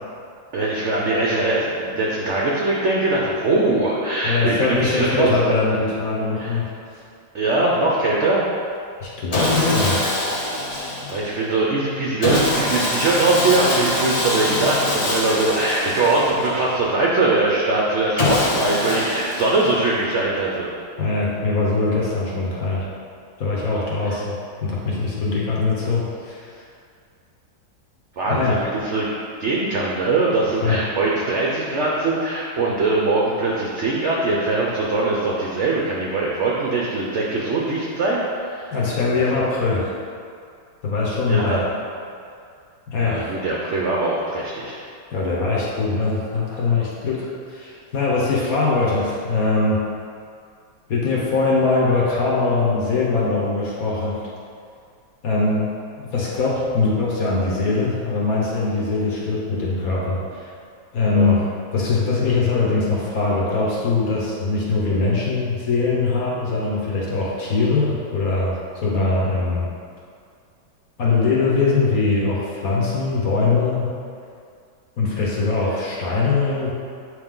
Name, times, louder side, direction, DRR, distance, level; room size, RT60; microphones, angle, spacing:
voice 1, 0.5-5.3 6.4-6.6 7.3-8.4 11.1-20.7 23.7-24.2 28.2-29.1 29.4-38.8 39.2-39.4 41.3-41.6 43.0-44.8 61.1-61.3, right 2 dB, 70° right, -4 dB, 0.6 m, -21 dB
voice 2, 4.2-7.0 9.0-10.1 21.0-22.9 23.4-24.3 24.6-26.6 28.3-28.6 30.6-30.8 38.7-39.9 40.8-41.6 42.9-43.3 45.1-49.8 50.9-54.2 55.2-60.5 60.9-61.5 61.7-69.7 71.0-73.9 75.0-76.7, left 3 dB, 55° left, -5 dB, 1.4 m, -22 dB
Sawing, 9.3-11.4 12.2-16.8 18.2-20.0, left 2 dB, 85° left, 0.3 m, -24 dB
8.2 x 3.2 x 3.7 m, 2.3 s
omnidirectional pair, 2.0 m